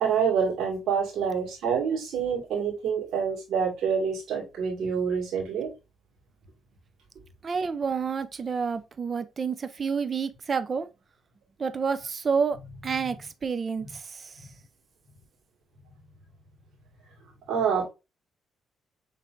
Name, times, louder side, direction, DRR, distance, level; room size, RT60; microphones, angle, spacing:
voice 1, 0.0-5.7 17.5-17.9, right 6 dB, 75° right, 2.0 m, -27 dB
voice 2, 7.4-10.9 11.6-12.6 12.8-14.2, right 5 dB, 40° right, 0.5 m, -29 dB
5.7 x 3.3 x 2.6 m
cardioid pair, 90°, 0 cm